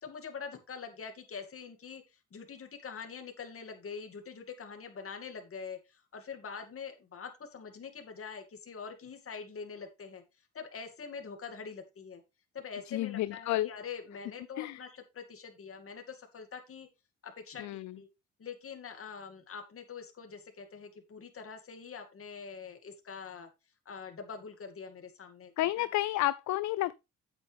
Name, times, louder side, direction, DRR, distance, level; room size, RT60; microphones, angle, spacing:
voice 1, 0.0-12.2 12.5-16.9 17.2-18.1 18.4-23.5 23.9-25.9, left 6 dB, 45° left, 2.4 m, -44 dB
voice 2, 12.9-13.7 14.6-14.8 17.6-17.9 25.6-26.9, left 16 dB, 65° left, 0.4 m, -31 dB
8.7 x 8.6 x 3.4 m
cardioid pair, 90°, 30 cm